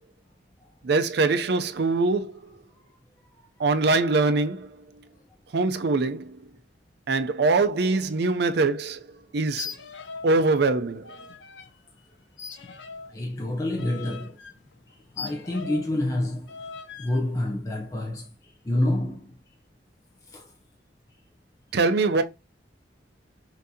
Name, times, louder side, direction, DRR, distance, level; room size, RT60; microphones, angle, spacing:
voice 1, 0.8-2.3 3.6-4.7 5.5-6.4 7.1-9.0 9.3-9.7 10.2-11.1 21.7-22.2, right 3 dB, 65° right, 0.5 m, -23 dB
sound 1, 9.5-10.4 10.6-11.7 12.4-16.0 16.5-17.2, left 5 dB, 85° left, 0.6 m, -40 dB
voice 2, 13.1-14.4 15.2-16.5 17.0-18.3 18.6-19.3 20.3-20.5, left 1 dB, 20° left, 0.6 m, -27 dB
5.8 x 2.6 x 2.7 m
head